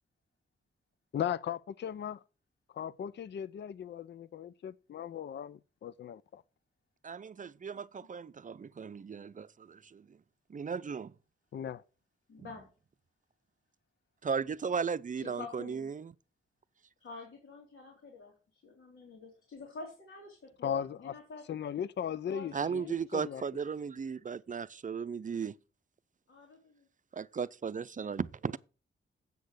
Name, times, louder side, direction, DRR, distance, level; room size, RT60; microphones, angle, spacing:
voice 1, 1.1-2.2 2.7-6.4 11.5-11.8 20.6-21.1 21.5-23.4, left 9 dB, 60° left, 0.5 m, -37 dB
voice 2, 7.0-10.1 10.5-11.1 14.2-16.1 22.5-25.5 27.1-28.6, right 6 dB, 40° right, 0.5 m, -36 dB
voice 3, 12.3-12.7 15.2-15.9 17.0-21.4 22.3-22.9 23.2-23.4 26.3-26.9, left 4 dB, 75° left, 3.1 m, -48 dB
8.3 x 6.5 x 6.4 m
cardioid pair, 65°, 21 cm